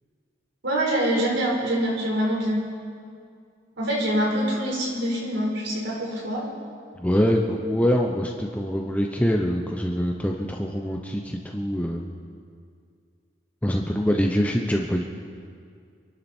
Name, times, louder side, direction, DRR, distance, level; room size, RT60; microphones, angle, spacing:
voice 1, 0.6-2.6 3.8-6.5 7.6-8.1, right 1 dB, 85° right, -2 dB, 4.6 m, -25 dB
voice 2, 7.0-12.1 13.6-15.0, equal, 10° left, 1 dB, 0.8 m, -24 dB
26.5 x 11.5 x 4.4 m, 2.2 s
head